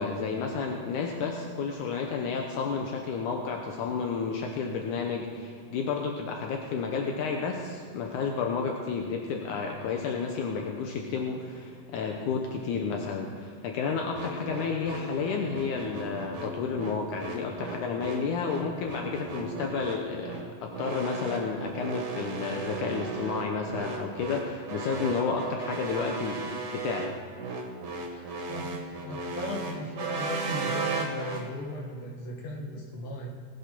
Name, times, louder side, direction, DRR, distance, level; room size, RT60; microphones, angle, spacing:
voice 1, 0.0-27.2, left 5 dB, 75° left, 2 dB, 2.3 m, -31 dB
sound 1, 14.1-31.4, right 4 dB, 70° right, 3.1 m, -36 dB
voice 2, 28.1-28.8 29.0-33.3, equal, 45° left, 0 dB, 2.5 m, -37 dB
19.5 x 8.3 x 6.0 m, 2.3 s
omnidirectional pair, 3.8 m